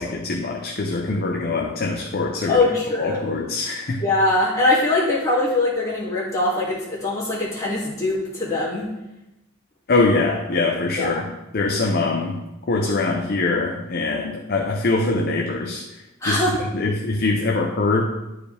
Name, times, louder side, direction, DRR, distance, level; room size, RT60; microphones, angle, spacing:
voice 1, 0.0-2.7 3.0-4.0 9.9-11.3 11.5-12.4 12.7-15.8 16.2-18.1, left 3 dB, 45° left, 1 dB, 0.6 m, -23 dB
voice 2, 2.5-3.4 4.0-8.9 11.0-11.2 16.2-16.6, left 2 dB, 15° left, -8 dB, 2.3 m, -22 dB
11.5 x 4.7 x 3.3 m, 0.97 s
head